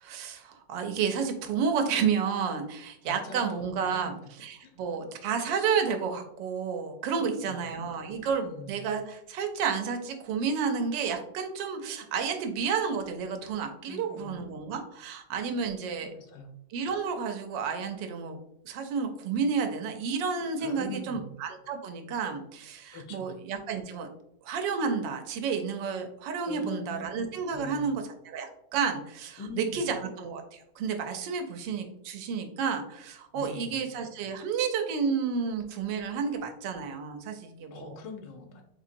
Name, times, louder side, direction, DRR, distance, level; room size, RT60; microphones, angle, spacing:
voice 1, 0.0-4.1 4.4-16.1 16.7-18.4 18.6-24.1 24.4-37.9, right 6 dB, 85° right, 5 dB, 1.3 m, -31 dB
voice 2, 3.0-4.1 4.6-4.8 7.2-9.0 13.9-14.4 15.6-15.7 16.0-16.5 20.6-21.3 22.9-23.3 26.5-27.0 27.5-28.0 29.4-29.9 33.3-33.9 37.7-38.6, left 3 dB, 80° left, 4 dB, 1.3 m, -43 dB
4.0 x 2.9 x 2.5 m, 0.76 s
omnidirectional pair, 1.9 m